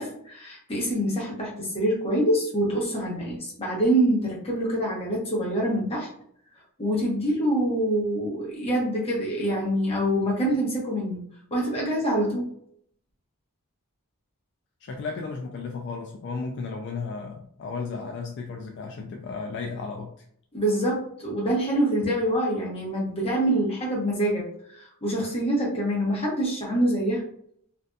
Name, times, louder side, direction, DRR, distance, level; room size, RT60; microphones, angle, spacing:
voice 1, 0.0-6.1 6.8-11.2 11.5-12.5 20.5-27.2, right 1 dB, 25° left, -4 dB, 0.9 m, -25 dB
voice 2, 14.8-20.1, left 4 dB, 55° left, 2 dB, 0.3 m, -34 dB
2.6 x 2.5 x 2.2 m, 0.66 s
head